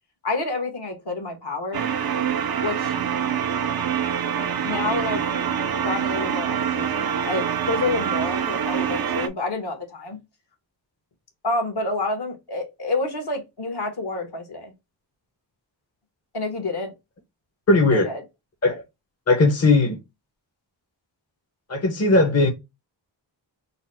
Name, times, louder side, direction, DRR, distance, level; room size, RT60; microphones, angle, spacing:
voice 1, 0.2-1.9 2.6-2.9 4.6-5.2 5.8-10.2 11.4-14.7 16.3-16.9 17.9-18.2, left 2 dB, 60° left, 1.3 m, -28 dB
sound 1, 1.7-9.3, right 8 dB, 55° right, 0.6 m, -25 dB
voice 2, 17.7-18.1 18.6-18.8 19.3-20.0 21.7-22.5, left 2 dB, 35° left, 0.9 m, -18 dB
4.0 x 2.0 x 4.3 m
wide cardioid pair, 80°, 45 cm